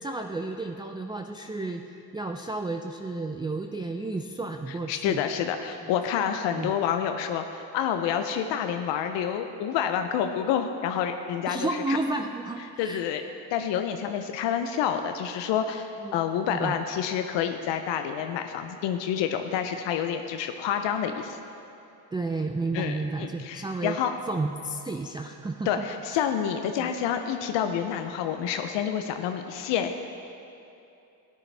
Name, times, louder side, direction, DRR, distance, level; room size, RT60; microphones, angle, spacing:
voice 1, 0.0-5.2 5.8-5.9 6.5-6.7 11.5-13.0 16.0-16.2 16.5-16.8 22.1-24.0 24.3-26.3 26.8-26.9, right 2 dB, 10° right, 4 dB, 0.4 m, -32 dB
voice 2, 4.9-12.0 12.8-13.2 13.5-21.4 22.7-24.1 25.7-30.0, left 8 dB, 90° left, 6 dB, 0.6 m, -28 dB
12.5 x 9.5 x 3.3 m, 2.7 s
cardioid pair, 75°, 42 cm